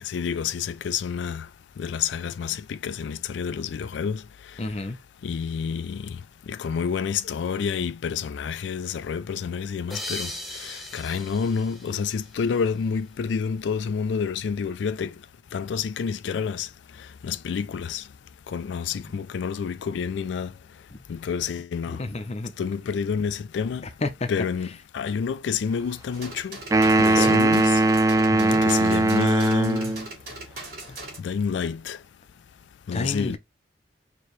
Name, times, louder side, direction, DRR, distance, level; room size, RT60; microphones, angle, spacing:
voice 1, 0.0-1.5 1.8-4.6 5.2-6.2 6.5-15.1 15.5-16.7 17.0-18.1 18.5-20.5 21.1-22.0 22.6-23.9 24.3-26.6 26.9-27.8 28.6-29.9 31.2-32.0 32.9-33.4, left 6 dB, 75° left, 0.3 m, -29 dB
voice 2, 4.6-5.0 21.9-22.5 24.0-24.3 27.2-27.3 28.3-28.6 32.9-33.4, left 2 dB, 35° left, 0.7 m, -29 dB
sound 1, 9.9-13.0, left 1 dB, ahead, 0.9 m, -39 dB
sound 2, 26.1-31.2, right 2 dB, 55° right, 2.5 m, -40 dB
sound 3, 26.7-30.1, right 2 dB, 20° right, 0.3 m, -20 dB
4.5 x 3.0 x 3.1 m
head